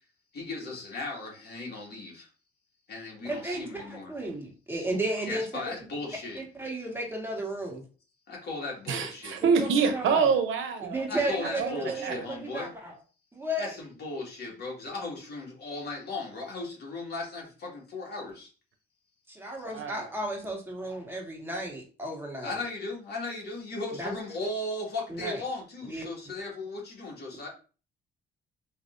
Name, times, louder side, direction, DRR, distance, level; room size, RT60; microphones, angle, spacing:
voice 1, 0.3-2.3 2.9-4.1 5.3-6.4 8.3-9.4 11.1-12.7 13.6-18.5 22.4-27.5, left 2 dB, 55° left, -2 dB, 2.1 m, -37 dB
voice 2, 3.2-5.8 6.4-7.8 9.6-10.3 10.8-13.0 13.3-13.8 19.3-22.6 24.0-24.1 25.1-25.4 25.8-26.1, right 1 dB, 10° right, -1 dB, 1.8 m, -34 dB
voice 3, 8.9-11.0 11.6-12.2 19.7-20.0, right 6 dB, 80° right, 6 dB, 0.8 m, -26 dB
5.0 x 3.3 x 2.7 m, 0.36 s
cardioid pair, 90°, 20 cm